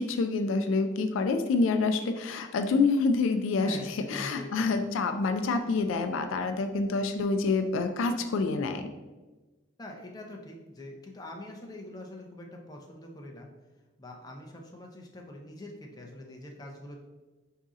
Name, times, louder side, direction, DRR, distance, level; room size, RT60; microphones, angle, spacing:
voice 1, 0.0-8.9, left 3 dB, 75° left, 8 dB, 0.3 m, -27 dB
voice 2, 3.6-4.8 9.8-13.5 14.0-17.0, left 1 dB, 20° left, 0 dB, 0.5 m, -44 dB
4.8 x 2.7 x 3.6 m, 1.2 s
head